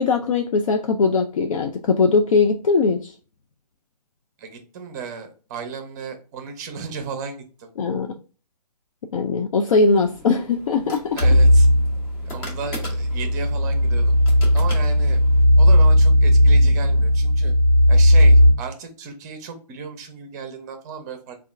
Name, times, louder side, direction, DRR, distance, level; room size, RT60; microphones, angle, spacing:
voice 1, 0.0-3.1 7.8-8.1 9.1-11.2, left 4 dB, 55° left, 0.4 m, -20 dB
voice 2, 4.4-7.7 11.1-11.7 12.2-14.1 14.5-15.2 15.6-17.5 17.9-21.4, right 5 dB, 25° right, 0.6 m, -34 dB
sound 1, 9.9-15.4, equal, 15° left, 0.7 m, -40 dB
sound 2, 11.2-18.5, left 1 dB, 70° left, 1.3 m, -16 dB
3.5 x 2.4 x 3.3 m
figure-of-eight pair, 140°, 21 cm